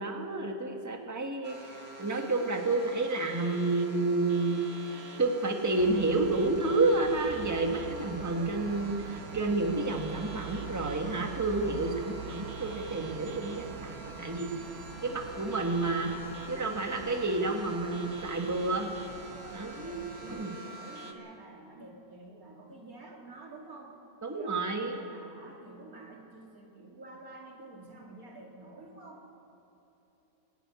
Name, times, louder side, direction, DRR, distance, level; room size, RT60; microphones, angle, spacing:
voice 1, 0.0-4.6 5.2-14.5 15.0-16.1 16.5-18.9 19.5-20.0 20.3-20.5 24.2-25.0, right 2 dB, 10° right, 3 dB, 1.5 m, -30 dB
sound 1, 1.4-21.1, right 1 dB, 50° right, 1.7 m, -46 dB
sound 2, 5.8-20.4, right 8 dB, 65° right, 0.9 m, -45 dB
voice 2, 19.8-24.0 24.3-29.3, right 2 dB, 90° right, -1 dB, 3.3 m, -49 dB
22.0 x 12.5 x 9.6 m, 3.0 s
omnidirectional pair, 1.5 m